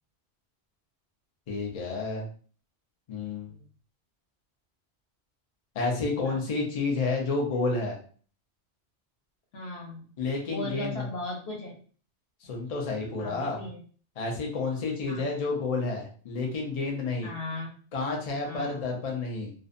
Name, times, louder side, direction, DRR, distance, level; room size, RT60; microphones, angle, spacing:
voice 1, 1.5-2.3 3.1-3.5 5.7-8.0 10.2-11.1 12.4-13.6 14.2-17.3 17.9-19.5, left 3 dB, 45° left, 0 dB, 0.5 m, -30 dB
voice 2, 9.5-10.1 10.5-11.8 13.2-13.8 14.8-15.3 17.2-17.8 18.4-18.8, left 2 dB, 70° left, -1 dB, 0.9 m, -38 dB
2.5 x 2.1 x 2.5 m, 0.43 s
omnidirectional pair, 1.1 m